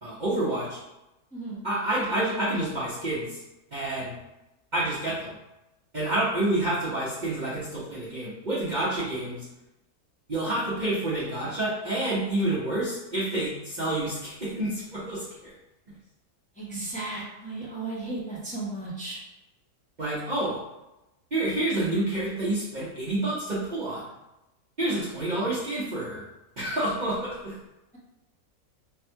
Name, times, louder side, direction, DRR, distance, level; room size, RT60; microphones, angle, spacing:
voice 1, 0.0-0.8 1.6-3.4 3.7-4.2 4.7-5.3 5.9-9.5 10.3-15.5 20.0-20.6 21.3-24.0 24.8-26.2 26.6-27.5, right 1 dB, 35° right, -10 dB, 1.0 m, -28 dB
voice 2, 1.3-1.6 16.5-19.2, right 2 dB, 5° left, -8 dB, 1.1 m, -35 dB
3.5 x 2.4 x 4.4 m, 0.95 s
omnidirectional pair, 1.5 m